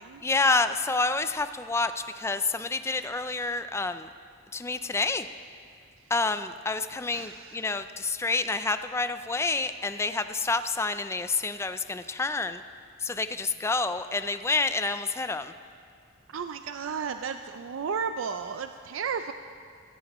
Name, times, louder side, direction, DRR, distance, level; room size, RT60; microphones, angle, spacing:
voice 1, 0.2-4.1 4.5-5.3 6.1-12.6 13.0-15.5, left 3 dB, 15° left, 11 dB, 0.4 m, -28 dB
voice 2, 7.1-7.7 16.3-19.3, right 6 dB, 80° right, 8 dB, 0.4 m, -34 dB
16.0 x 15.5 x 3.0 m, 2.3 s
head